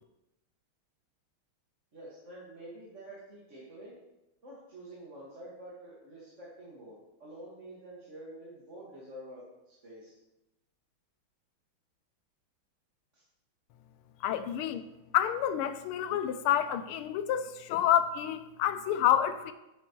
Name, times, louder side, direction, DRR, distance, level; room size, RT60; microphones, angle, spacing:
voice 1, 1.9-3.9 4.4-10.2 13.1-13.2, right 1 dB, 35° right, -7 dB, 2.1 m, -48 dB
voice 2, 14.2-14.8 15.1-19.5, left 10 dB, 90° left, 12 dB, 1.5 m, -28 dB
10.0 x 9.6 x 3.1 m, 0.95 s
omnidirectional pair, 2.3 m